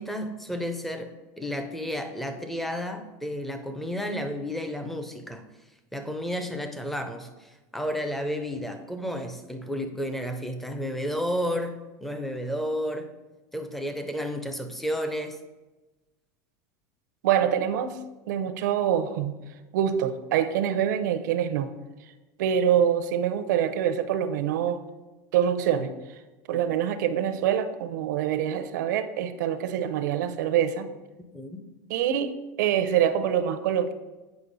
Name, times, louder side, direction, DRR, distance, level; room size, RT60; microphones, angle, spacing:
voice 1, 0.0-5.4 5.9-13.1 13.5-15.4 31.2-31.6, equal, ahead, 7 dB, 0.5 m, -32 dB
voice 2, 17.2-19.4 19.7-21.7 22.4-24.8 25.3-26.2 26.5-30.9 31.9-33.9, right 9 dB, 85° right, 10 dB, 0.6 m, -25 dB
8.1 x 5.4 x 3.9 m, 1.1 s
supercardioid pair, 160°, 9 cm